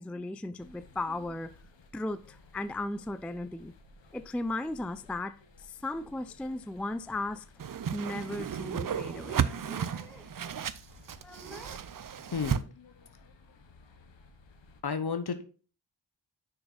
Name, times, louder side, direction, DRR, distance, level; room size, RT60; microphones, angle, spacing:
voice 1, 0.0-1.5 1.9-3.7 4.1-7.5 7.9-10.3 11.2-11.8, left 2 dB, 5° left, 0.3 m, -36 dB
sound 1, 0.6-14.8, left 3 dB, 85° left, 1.2 m, -57 dB
Whoosh swoosh swish, 7.6-12.6, right 8 dB, 50° right, 0.6 m, -33 dB
voice 2, 12.3-13.3 14.8-15.4, left 5 dB, 60° left, 1.0 m, -34 dB
6.7 x 6.0 x 3.9 m
cardioid pair, 55°, 43 cm